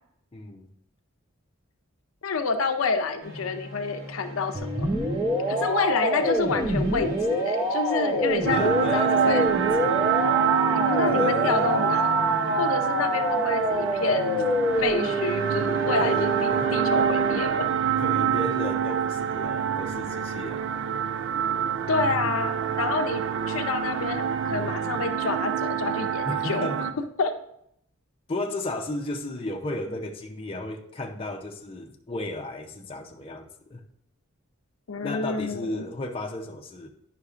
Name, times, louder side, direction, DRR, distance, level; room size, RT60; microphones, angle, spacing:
voice 1, 0.3-0.7 8.5-10.1 11.1-11.8 16.0-16.8 18.0-20.6 26.2-26.9 28.3-33.8 35.0-36.9, left 2 dB, 25° left, 1 dB, 0.6 m, -34 dB
voice 2, 2.2-4.9 5.5-9.4 10.7-12.2 12.5-14.3 14.8-17.9 21.9-26.7 27.2-27.3 34.9-35.8, left 4 dB, 80° left, 7 dB, 0.6 m, -28 dB
sound 1, 3.2-16.5, equal, 90° right, 1.9 m, -43 dB
sound 2, 4.6-17.4, equal, 20° right, 0.7 m, -26 dB
sound 3, 8.4-26.9, right 8 dB, 60° right, 0.4 m, -26 dB
9.8 x 5.7 x 2.5 m, 0.74 s
head